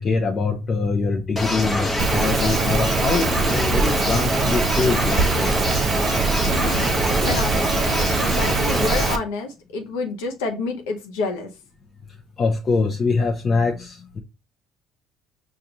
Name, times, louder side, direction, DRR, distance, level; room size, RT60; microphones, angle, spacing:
voice 1, 0.0-5.5 7.2-7.3 8.1-8.2 12.4-14.2, left 4 dB, 40° left, 0.7 m, -24 dB
sound 1, 1.4-9.2, left 1 dB, 20° left, 1.0 m, -24 dB
Rain, 2.0-9.2, right 5 dB, 55° right, 0.5 m, -23 dB
voice 2, 6.5-11.5, left 3 dB, 85° left, 0.8 m, -29 dB
5.1 x 2.5 x 2.9 m
supercardioid pair, 75°, 0 cm